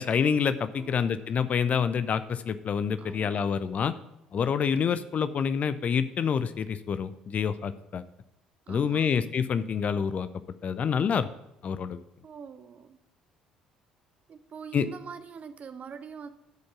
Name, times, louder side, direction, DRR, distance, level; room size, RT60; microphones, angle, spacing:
voice 1, 0.0-3.9 4.3-8.0 8.7-10.3 10.6-11.3 11.6-12.0 14.7-14.9, left 7 dB, 40° left, 13 dB, 0.5 m, -27 dB
voice 2, 0.7-1.1 3.0-3.5 8.7-9.1 12.2-13.0 14.3-16.3, right 6 dB, 40° right, 11 dB, 0.8 m, -44 dB
12.0 x 5.2 x 6.8 m, 0.86 s
figure-of-eight pair, 55°, 4 cm